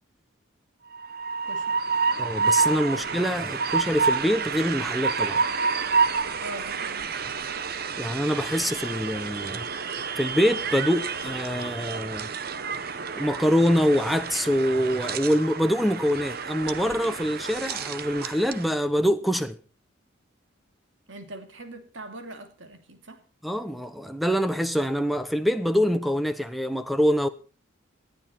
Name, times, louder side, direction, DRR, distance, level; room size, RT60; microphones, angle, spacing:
Train, 0.9-18.7, right 5 dB, 50° right, 0.9 m, -29 dB
voice 1, 1.5-1.8 2.9-3.2 6.4-7.2 21.1-23.2, right 1 dB, 75° right, 2.5 m, -42 dB
voice 2, 2.2-5.4 8.0-9.7 10.2-12.3 13.1-19.6 23.4-27.3, equal, ahead, 0.9 m, -25 dB
19.0 x 11.5 x 4.3 m
head